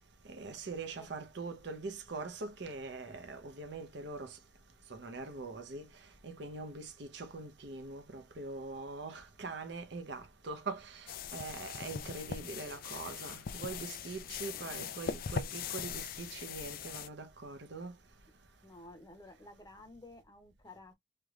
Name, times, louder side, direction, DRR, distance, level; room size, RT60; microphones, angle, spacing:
voice 1, 0.3-4.4 4.9-5.9 6.2-17.9, right 3 dB, 55° right, 0.7 m, -43 dB
sound 1, 11.1-17.1, left 7 dB, 45° left, 0.4 m, -41 dB
voice 2, 18.6-20.9, left 2 dB, 20° left, 0.8 m, -53 dB
3.4 x 3.0 x 2.3 m
head